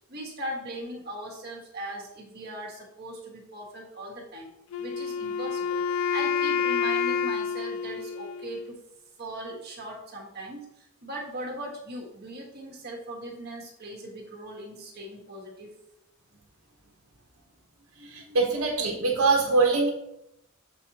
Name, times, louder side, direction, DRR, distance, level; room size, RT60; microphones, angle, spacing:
voice 1, 0.1-4.5 4.8-5.9 6.1-8.8 9.2-15.7, right 1 dB, 50° right, 0 dB, 1.4 m, -39 dB
Wind instrument woodwind instrument, 4.7-8.8, left 6 dB, 75° left, 0.4 m, -28 dB
voice 2, 18.0-19.9, right 3 dB, 75° right, 0 dB, 1.0 m, -23 dB
7.3 x 5.4 x 2.9 m, 0.82 s
head